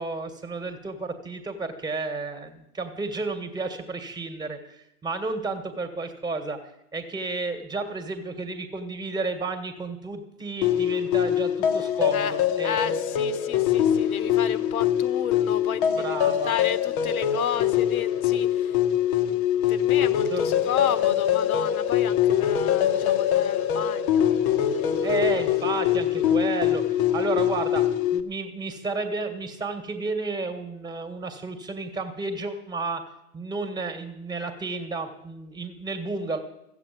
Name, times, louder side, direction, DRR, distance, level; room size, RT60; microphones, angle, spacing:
voice 1, 0.0-4.6 5.0-6.6 6.9-13.0 16.0-16.5 20.3-20.4 25.0-26.8 27.1-27.8 28.1-33.0 33.3-36.4, right 3 dB, 10° right, 8 dB, 1.6 m, -32 dB
sound 1, 10.6-28.2, left 10 dB, 35° left, 1.0 m, -23 dB
voice 2, 12.1-18.8 19.2-24.3 24.6-24.8 25.0-25.2, left 9 dB, 65° left, 14 dB, 1.3 m, -33 dB
14.5 x 8.1 x 9.2 m, 0.84 s
hypercardioid pair, 130°, 45 cm